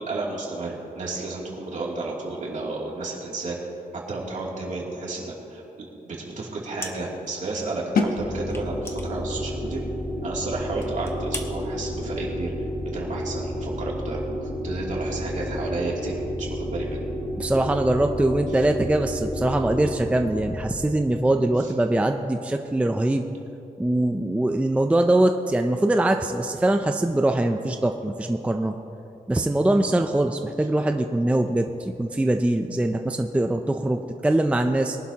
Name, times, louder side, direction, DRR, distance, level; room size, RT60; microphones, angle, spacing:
voice 1, 0.0-3.6 3.9-9.8 10.2-12.5 12.9-17.0 18.5-18.6 21.6-21.7, right 3 dB, 60° right, -4 dB, 2.7 m, -32 dB
sound 1, 6.8-7.4 7.6-7.7 8.5-9.9 10.3-10.4 10.8-11.5, left 2 dB, 15° left, 1.0 m, -38 dB
sound 2, 8.0-13.7, left 4 dB, 85° left, 1.1 m, -33 dB
sound 3, 8.1-20.8, equal, 60° left, 2.4 m, -31 dB
voice 2, 17.4-23.3 23.8-28.7 29.3-35.0, right 1 dB, 10° right, 5 dB, 0.4 m, -22 dB
22.5 x 11.5 x 2.8 m, 2.9 s
wide cardioid pair, 170°, 15 cm